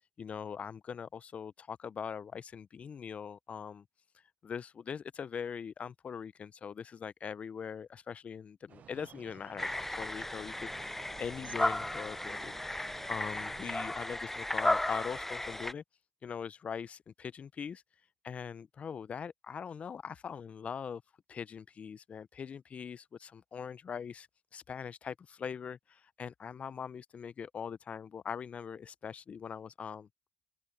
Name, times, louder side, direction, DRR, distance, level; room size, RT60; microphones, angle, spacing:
voice 1, 0.2-3.8 4.4-15.8 16.2-17.8 18.2-21.0 21.3-24.3 24.5-30.1, left 7 dB, 45° left, 0.6 m, -42 dB
sound 1, 8.7-13.7, right 9 dB, 55° right, 0.4 m, -54 dB
sound 2, 9.6-15.7, left 1 dB, 10° left, 0.3 m, -35 dB
hypercardioid pair, 55°, 3 cm